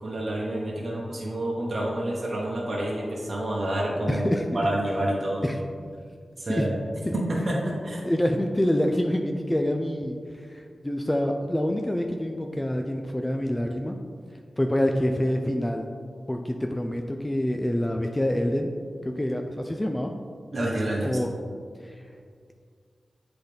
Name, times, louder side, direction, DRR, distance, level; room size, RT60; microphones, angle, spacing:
voice 1, 0.0-5.5 6.4-6.8 7.1-8.0 20.5-21.2, right 1 dB, 45° right, -4 dB, 1.0 m, -28 dB
voice 2, 4.1-4.6 5.4-5.6 6.5-6.7 7.1-7.2 8.1-10.2 10.5-13.9 14.6-15.9 16.3-18.7 19.0-20.1 21.0-21.3 21.8-21.9, left 1 dB, 15° left, 3 dB, 0.4 m, -26 dB
8.0 x 3.9 x 3.4 m, 2.1 s
wide cardioid pair, 70°, 0 cm